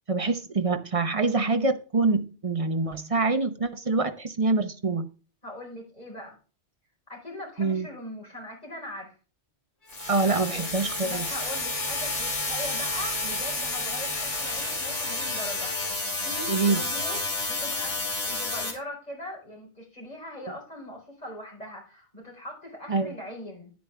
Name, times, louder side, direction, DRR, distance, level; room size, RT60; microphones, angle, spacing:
voice 1, 0.1-5.1 7.6-7.9 10.1-11.2 16.5-16.8 22.9-23.1, right 3 dB, 35° right, 0.8 m, -25 dB
voice 2, 5.4-6.4 7.1-9.1 10.2-10.7 11.0-23.7, left 1 dB, 35° left, 5.0 m, -41 dB
Bowed string instrument, 9.8-16.6, left 2 dB, 65° left, 3.5 m, -43 dB
sound 1, 9.9-18.7, left 2 dB, 85° left, 3.4 m, -30 dB
9.8 x 9.3 x 3.4 m
omnidirectional pair, 1.2 m